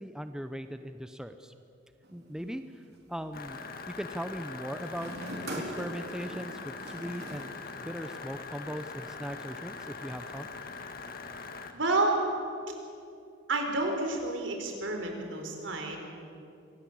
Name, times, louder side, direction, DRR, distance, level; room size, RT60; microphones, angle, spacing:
voice 1, 0.0-1.5 2.1-2.8 3.1-3.6 3.9-5.1 5.6-7.5 7.8-10.5, equal, 5° right, 9 dB, 0.7 m, -39 dB
sound 1, 2.0-3.3 4.7-8.3, right 1 dB, 60° right, 3.7 m, -43 dB
sound 2, 3.3-11.7, left 4 dB, 50° left, 1.8 m, -42 dB
voice 2, 11.7-12.2 13.5-16.0, right 2 dB, 75° right, 3 dB, 4.3 m, -29 dB
24.5 x 17.5 x 8.5 m, 2.6 s
head